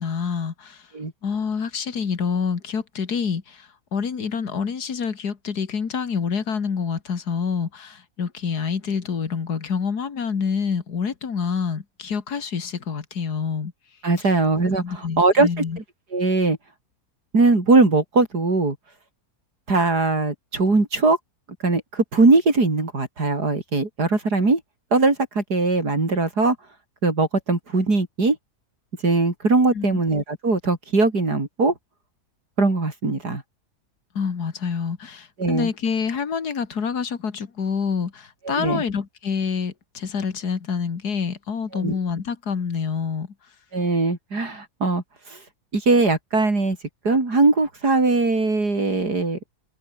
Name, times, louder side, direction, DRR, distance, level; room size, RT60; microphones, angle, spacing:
voice 1, 0.0-0.8 1.2-13.7 14.8-15.8 29.7-30.0 34.1-43.3, left 6 dB, 75° left, 2.6 m, -27 dB
voice 2, 14.0-15.6 16.1-16.6 17.3-18.8 19.7-21.2 21.6-24.6 24.9-26.6 27.0-28.4 29.0-31.7 32.6-33.4 35.4-35.7 38.4-38.8 41.7-42.0 43.7-45.4 45.7-46.8 47.0-49.4, right 3 dB, 80° right, 5.1 m, -20 dB
omnidirectional pair, 1.7 m